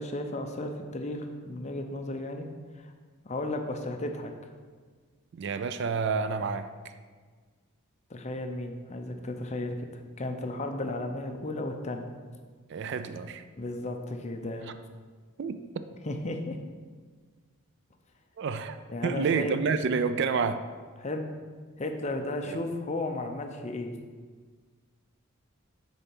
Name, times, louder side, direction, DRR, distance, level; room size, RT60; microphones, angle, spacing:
voice 1, 0.0-2.5 2.8-2.9 3.2-4.3 8.1-9.9 10.2-12.1 13.6-14.7 16.1-16.6 18.9-19.6 21.0-21.3 21.8-23.9, left 2 dB, 30° left, 5 dB, 0.6 m, -34 dB
voice 2, 5.3-6.7 12.7-13.4 15.4-15.8 18.4-20.6 22.4-22.6, right 5 dB, 50° right, 10 dB, 0.3 m, -29 dB
6.7 x 4.0 x 6.1 m, 1.5 s
head